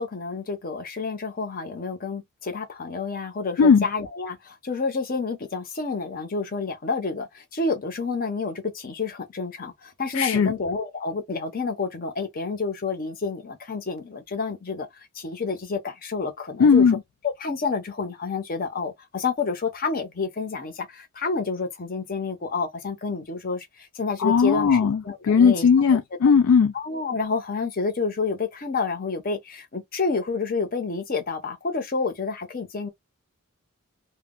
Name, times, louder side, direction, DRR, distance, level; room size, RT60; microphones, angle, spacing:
voice 1, 0.0-16.9 17.4-24.8 25.1-25.7 26.7-32.9, left 4 dB, 40° left, 0.7 m, -29 dB
voice 2, 10.1-10.5 16.6-17.0 24.2-26.7, left 6 dB, 65° left, 0.3 m, -18 dB
2.2 x 2.1 x 3.6 m
head